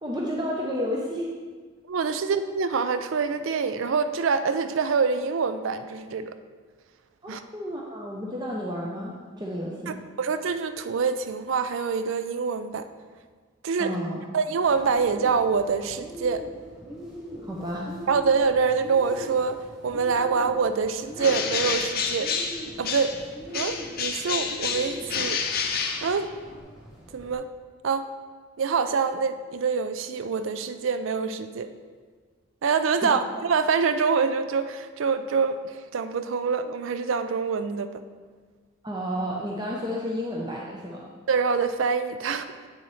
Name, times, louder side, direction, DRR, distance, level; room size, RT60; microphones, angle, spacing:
voice 1, 0.0-1.3 7.2-10.0 13.8-14.2 17.4-17.9 33.0-33.2 38.8-41.1, equal, 20° right, -3 dB, 0.6 m, -31 dB
voice 2, 1.9-6.4 7.3-7.4 9.9-12.9 13.6-14.0 14.3-16.5 18.1-22.3 22.8-23.2 23.5-25.4 26.0-26.3 27.1-27.5 27.8-28.1 28.6-31.7 32.6-38.0 41.3-42.5, right 5 dB, 65° right, 10 dB, 0.4 m, -25 dB
Bird, 14.6-27.3, equal, ahead, 1.9 m, -42 dB
Bird 2, 21.2-23.3 23.5-26.6, left 6 dB, 45° left, 0.6 m, -29 dB
8.3 x 6.9 x 3.1 m, 1.5 s
head